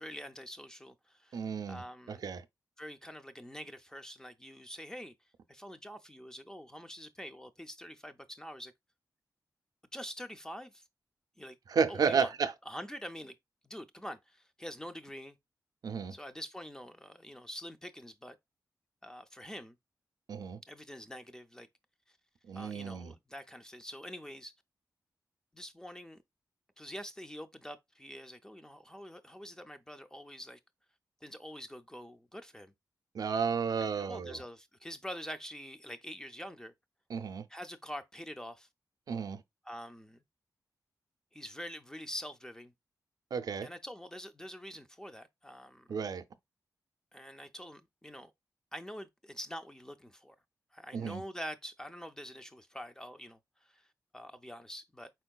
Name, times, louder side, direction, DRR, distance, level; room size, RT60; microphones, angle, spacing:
voice 1, 0.0-1.4 1.7-2.3 2.8-5.1 5.5-8.7 9.9-10.8 11.4-11.6 11.9-12.3 12.7-13.4 13.6-15.4 16.1-18.4 19.0-19.8 20.7-21.7 22.5-24.5 25.5-26.2 26.8-30.6 31.2-32.7 33.8-36.7 37.5-38.7 39.7-40.2 41.3-42.7 43.6-45.9 47.1-48.3 48.7-50.4 50.7-53.9 54.1-55.1, equal, 10° left, 0.4 m, -45 dB
voice 2, 1.3-2.4 11.7-12.5 15.8-16.1 20.3-20.6 22.5-23.1 33.1-34.4 37.1-37.5 39.1-39.4 43.3-43.7 45.9-46.2 50.9-51.2, right 6 dB, 65° right, 0.4 m, -32 dB
4.5 x 4.4 x 2.2 m
wide cardioid pair, 155°, 7 cm